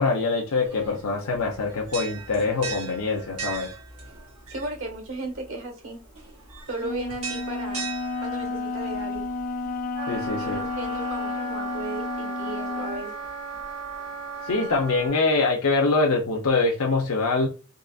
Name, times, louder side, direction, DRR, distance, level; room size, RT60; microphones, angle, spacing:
voice 1, 0.0-3.7 10.1-10.6 14.5-17.5, left 3 dB, 80° left, 1 dB, 0.6 m, -24 dB
sound 1, 0.6-15.1, right 5 dB, 90° right, 1.0 m, -41 dB
voice 2, 4.5-6.0 6.7-7.9 8.2-9.3 10.4-13.2, right 2 dB, 70° right, 3 dB, 1.3 m, -35 dB
Wind instrument woodwind instrument, 6.8-13.1, left 3 dB, 40° left, 0.3 m, -31 dB
Wind instrument woodwind instrument 2, 9.9-15.1, right 5 dB, 30° right, 0.6 m, -36 dB
3.8 x 2.8 x 2.4 m, 0.34 s
head